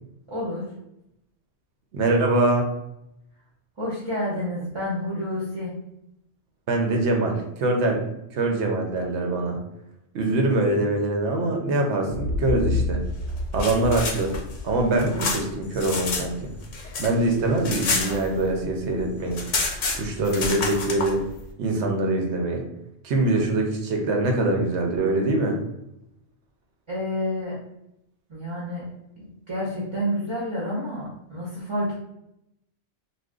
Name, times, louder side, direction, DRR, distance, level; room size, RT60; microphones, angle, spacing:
voice 1, 0.3-0.6 3.8-5.7 26.9-27.6 28.3-28.8 29.5-32.0, left 1 dB, 25° right, -7 dB, 0.7 m, -29 dB
voice 2, 1.9-2.7 6.7-8.0 8.3-9.6 10.1-13.0 13.5-14.3 14.6-16.5 17.0-19.4 19.9-21.2 21.6-22.6 23.0-25.6, right 2 dB, 70° right, 2 dB, 0.9 m, -23 dB
sound 1, 12.1-15.9, left 2 dB, 40° left, 0.6 m, -29 dB
sound 2, 13.3-16.3 16.6-18.7 19.0-19.1 19.3-21.1, left 4 dB, 75° left, 1.0 m, -28 dB
2.5 x 2.2 x 3.5 m, 0.82 s
omnidirectional pair, 1.3 m